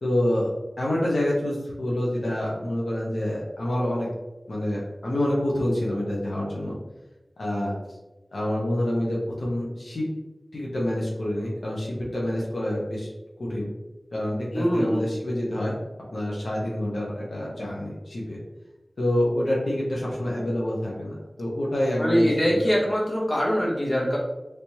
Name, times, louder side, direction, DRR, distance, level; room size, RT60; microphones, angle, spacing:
voice 1, 0.0-0.5 0.8-4.1 4.5-6.8 7.4-7.7 8.3-10.0 10.5-13.1 13.4-13.7 14.1-15.7 16.1-18.4 19.0-22.8, left 1 dB, 90° left, -4 dB, 0.7 m, -27 dB
voice 2, 14.5-15.1 22.0-24.2, equal, 45° left, -5 dB, 1.1 m, -23 dB
3.3 x 3.0 x 2.9 m, 1.1 s
wide cardioid pair, 50°, 0 cm